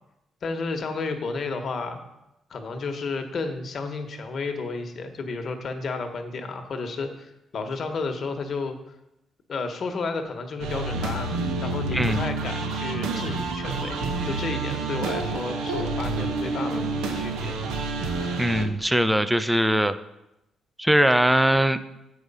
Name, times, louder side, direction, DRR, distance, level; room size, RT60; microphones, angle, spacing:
voice 1, 0.4-2.0 2.5-8.9 9.5-16.9 17.1-17.5, left 4 dB, 55° left, 6 dB, 1.1 m, -32 dB
sound 1, 10.6-18.6, right 3 dB, 90° right, 0.8 m, -28 dB
voice 2, 11.9-12.2 18.4-20.0 20.8-21.8, equal, 5° right, 12 dB, 0.4 m, -21 dB
8.0 x 4.9 x 5.5 m, 0.89 s
cardioid pair, 90°, 0 cm